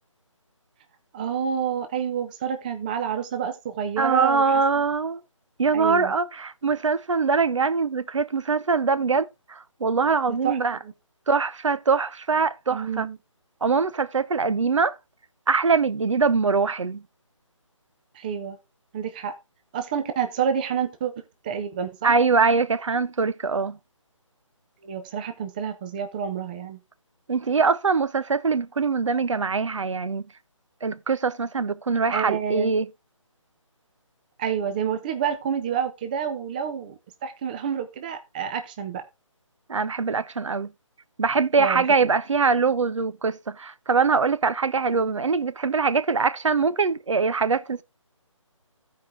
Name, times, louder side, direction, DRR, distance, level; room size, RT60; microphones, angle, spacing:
voice 1, 1.1-4.8 5.7-6.1 10.4-10.6 10.8-10.9 12.7-13.2 18.1-18.6 18.9-19.3 19.7-21.1 21.4-22.1 24.8-26.8 32.1-32.7 34.4-39.0 41.6-42.1, right 8 dB, 15° right, 0.6 m, -28 dB
voice 2, 4.0-5.2 5.6-10.8 11.3-13.1 13.6-15.0 15.5-17.0 22.0-23.8 27.3-30.3 30.8-32.9 39.7-40.7 41.2-47.8, right 4 dB, 65° right, 0.7 m, -23 dB
14.0 x 4.9 x 3.4 m
figure-of-eight pair, 155°, 17 cm